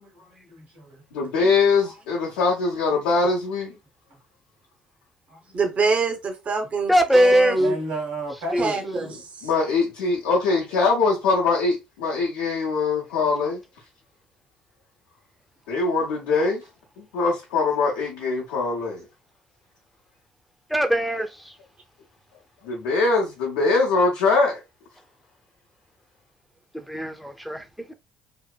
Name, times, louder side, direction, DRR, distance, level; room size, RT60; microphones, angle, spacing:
voice 1, 0.0-1.0 1.8-2.0 5.3-5.6 7.6-9.1, right 2 dB, 70° right, 1.4 m, -34 dB
voice 2, 1.1-3.7 9.4-13.6 15.7-16.6 17.0-19.0 22.6-24.6, left 4 dB, 75° left, 0.6 m, -22 dB
voice 3, 5.5-7.8 8.6-9.5, right 3 dB, 40° right, 0.7 m, -25 dB
voice 4, 6.9-7.6 8.5-8.8 20.7-21.6 26.7-27.9, equal, ahead, 0.5 m, -21 dB
2.8 x 2.1 x 2.3 m
hypercardioid pair, 60°, 4 cm